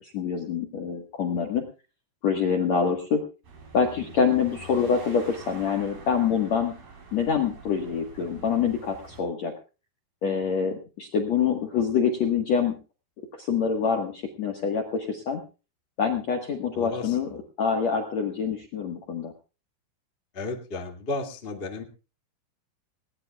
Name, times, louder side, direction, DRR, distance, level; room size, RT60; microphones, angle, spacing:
voice 1, 0.0-1.6 2.2-3.2 3.7-6.7 7.1-9.5 10.2-12.7 13.3-15.4 16.0-17.3 17.6-19.3, left 6 dB, 65° left, 3 dB, 1.7 m, -26 dB
sound 1, 3.4-9.2, right 3 dB, 50° right, 6.1 m, -46 dB
voice 2, 16.7-17.2 20.3-21.8, left 2 dB, 45° left, 3 dB, 0.7 m, -33 dB
20.0 x 19.0 x 2.4 m, 0.33 s
omnidirectional pair, 5.6 m